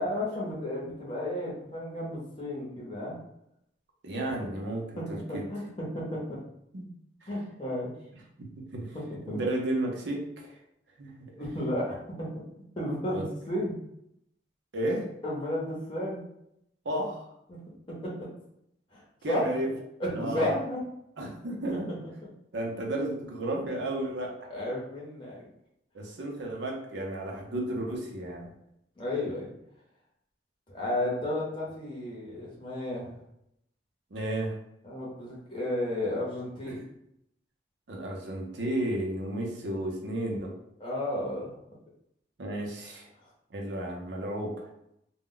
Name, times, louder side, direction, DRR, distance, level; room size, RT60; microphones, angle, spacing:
voice 1, 0.0-3.1 4.4-4.5 5.0-6.4 7.3-7.9 8.9-9.4 11.4-12.3 12.8-13.8 15.2-16.2 17.5-17.6 18.0-18.1 18.9-19.5 20.0-20.8 24.5-25.3 29.0-29.5 30.7-33.1 34.8-36.8 40.8-41.5, left 1 dB, 30° left, -5 dB, 0.7 m, -33 dB
voice 2, 4.0-5.5 6.7-6.8 7.2-7.3 8.4-9.0 9.2-10.6 11.0-11.1 13.1-13.2 14.7-15.1 16.8-17.3 19.2-19.7 20.1-20.5 21.2-22.0 22.5-24.3 25.9-28.5 34.1-34.5 36.6-36.7 37.9-40.5 42.4-43.1 43.5-44.7, right 1 dB, 85° right, 0 dB, 0.6 m, -33 dB
2.2 x 2.1 x 3.7 m, 0.78 s
head